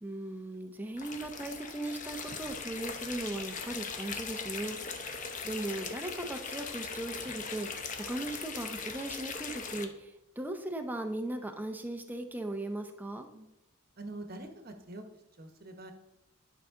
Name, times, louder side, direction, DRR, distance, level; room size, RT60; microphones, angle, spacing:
voice 1, 0.0-5.1 5.4-13.3, right 1 dB, 10° right, 5 dB, 0.7 m, -38 dB
sound 1, 1.0-9.8, left 5 dB, 40° left, 0.8 m, -40 dB
voice 2, 14.0-15.0 15.4-15.9, right 2 dB, 45° right, 6 dB, 1.1 m, -44 dB
11.0 x 5.8 x 3.7 m, 0.88 s
head